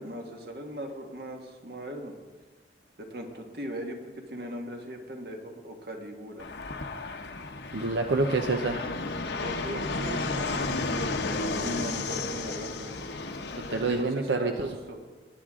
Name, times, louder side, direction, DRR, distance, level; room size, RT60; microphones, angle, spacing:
voice 1, 0.0-2.1 3.0-6.5 9.4-11.2 11.5-12.9 13.7-15.0, equal, 60° right, 3 dB, 1.7 m, -39 dB
Fixed-wing aircraft airplane, 6.4-14.0, left 3 dB, 75° left, 1.0 m, -33 dB
voice 2, 7.7-8.8 13.7-14.7, right 3 dB, 85° right, 4 dB, 0.8 m, -27 dB
19.5 x 9.2 x 3.7 m, 1.3 s
head